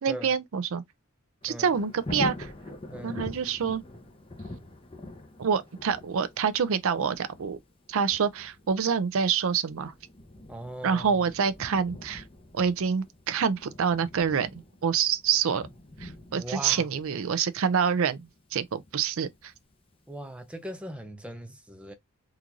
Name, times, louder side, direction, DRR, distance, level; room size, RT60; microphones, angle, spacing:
voice 1, 0.0-0.8 1.4-2.5 3.0-3.8 5.4-7.6 7.9-9.9 10.8-12.2 12.5-14.5 14.8-15.7 16.0-19.3, right 6 dB, 65° right, 0.5 m, -26 dB
Thunder, 1.4-20.2 20.6-20.7, left 1 dB, 25° left, 0.8 m, -44 dB
voice 2, 2.9-3.2 10.5-11.1 16.4-16.9 20.1-21.9, right 1 dB, 5° right, 0.6 m, -39 dB
3.8 x 2.5 x 2.9 m
head